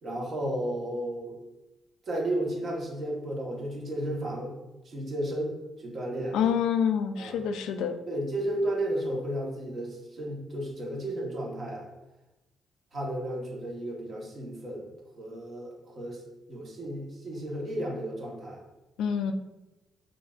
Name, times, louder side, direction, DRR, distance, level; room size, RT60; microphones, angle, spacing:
voice 1, 0.0-1.4 2.1-4.5 4.8-6.4 7.2-7.4 8.1-11.9 12.9-14.9 15.2-16.2 16.5-18.6, right 1 dB, 50° right, -2 dB, 1.1 m, -33 dB
voice 2, 6.3-8.0 19.0-19.3, left 8 dB, 85° left, 8 dB, 0.3 m, -27 dB
5.5 x 2.5 x 2.4 m, 1.0 s
cardioid pair, 90°, 0 cm